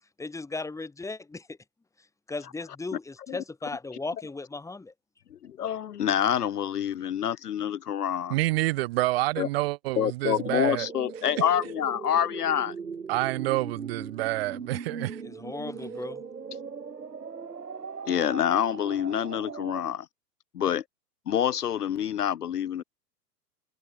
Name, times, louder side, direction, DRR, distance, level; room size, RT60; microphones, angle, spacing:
voice 1, 0.2-1.6 2.3-4.9 15.2-16.2, left 3 dB, 5° left, 3.4 m, -36 dB
voice 2, 5.3-8.4 9.4-9.5 10.0-12.7 18.1-20.1 20.5-20.8 21.3-22.8, left 9 dB, 70° left, 0.7 m, -27 dB
voice 3, 8.3-10.9 13.1-15.2, right 18 dB, 35° right, 1.1 m, -28 dB
sound 1, 10.3-19.8, right 5 dB, 75° right, 5.3 m, -39 dB
figure-of-eight pair, 105°, 48 cm